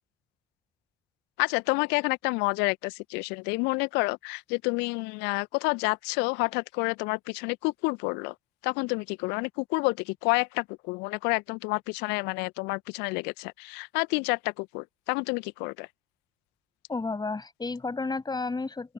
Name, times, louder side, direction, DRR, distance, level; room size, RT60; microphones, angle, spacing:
voice 1, 1.4-8.3 8.6-15.9, left 29 dB, 65° left, 1.5 m, -29 dB
voice 2, 16.9-18.9, left 3 dB, 20° left, 7.8 m, -32 dB
open air
figure-of-eight pair, 45°, 19 cm